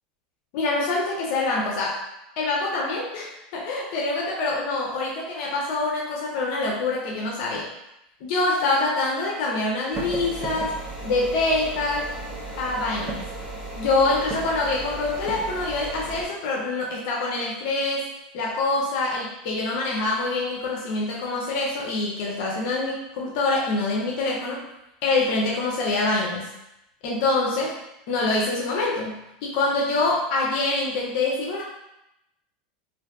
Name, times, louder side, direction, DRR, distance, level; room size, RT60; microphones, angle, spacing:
voice 1, 0.5-2.0 2.4-7.7 8.2-10.7 11.0-12.1 12.6-13.3 13.8-18.0 18.3-24.6 25.0-26.5 27.0-27.8 28.1-31.6, left 2 dB, 60° left, -2 dB, 0.5 m, -25 dB
sound 1, 9.9-16.2, right 2 dB, 15° right, 0.6 m, -34 dB
2.6 x 2.5 x 2.2 m, 0.87 s
supercardioid pair, 140°, 5 cm